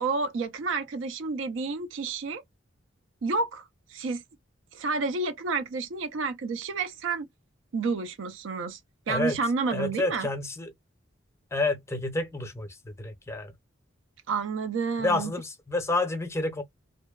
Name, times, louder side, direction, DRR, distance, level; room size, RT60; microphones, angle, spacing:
voice 1, 0.0-2.4 3.2-4.2 4.7-7.3 7.7-8.8 9.1-10.3 14.3-15.3, right 4 dB, 75° right, 0.4 m, -30 dB
voice 2, 9.1-9.4 9.7-10.7 11.5-13.5 15.0-16.6, left 2 dB, 15° left, 0.5 m, -29 dB
2.6 x 2.1 x 2.2 m
head